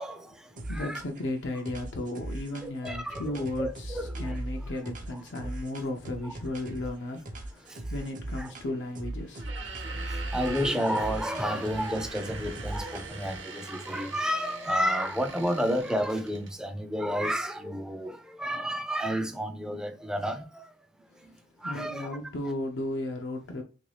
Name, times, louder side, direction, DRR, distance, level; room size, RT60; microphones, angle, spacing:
voice 1, 0.0-1.0 2.6-4.4 5.1-5.5 6.2-6.3 7.7-7.8 8.4-8.5 10.1-20.7 21.6-22.2, equal, 5° right, 0.3 m, -31 dB
voice 2, 0.6-9.5 21.1-21.2 21.6-23.6, left 1 dB, 75° left, 0.5 m, -35 dB
sound 1, 0.6-1.3 1.6-6.9 7.2-8.7 8.9-13.4, right 1 dB, 45° right, 0.6 m, -38 dB
sound 2, 9.3-16.6, right 4 dB, 90° right, 0.8 m, -43 dB
3.0 x 2.6 x 3.2 m
head